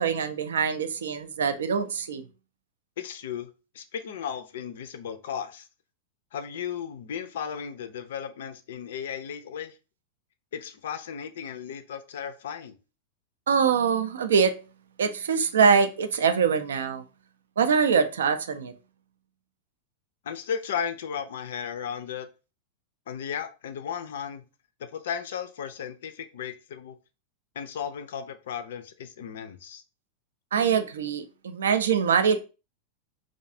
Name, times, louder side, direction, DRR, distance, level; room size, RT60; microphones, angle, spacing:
voice 1, 0.0-2.3 13.5-14.6 15.0-17.0 17.6-18.7 30.5-32.4, right 6 dB, 65° right, 0.3 m, -23 dB
voice 2, 3.0-3.5 3.7-5.7 6.3-9.8 10.5-12.8 20.2-22.3 23.1-24.4 24.9-26.9 27.6-29.8, left 8 dB, 60° left, 0.3 m, -35 dB
2.4 x 2.3 x 2.6 m
figure-of-eight pair, 90°, 0 cm